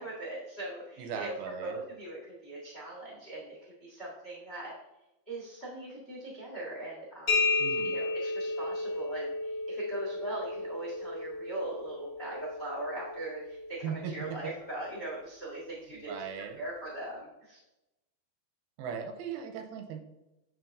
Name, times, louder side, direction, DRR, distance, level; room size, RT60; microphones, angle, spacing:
voice 1, 0.0-1.3 1.6-4.7 5.3-7.4 7.8-16.1 16.5-17.6, right 1 dB, 80° left, -4 dB, 0.5 m, -40 dB
voice 2, 1.0-1.8 7.6-8.0 13.8-14.4 16.0-16.6 18.8-20.0, right 7 dB, 85° right, 5 dB, 2.5 m, -38 dB
sound 1, 7.3-14.8, left 3 dB, 50° left, 1.1 m, -34 dB
10.5 x 3.8 x 2.6 m, 0.95 s
omnidirectional pair, 4.5 m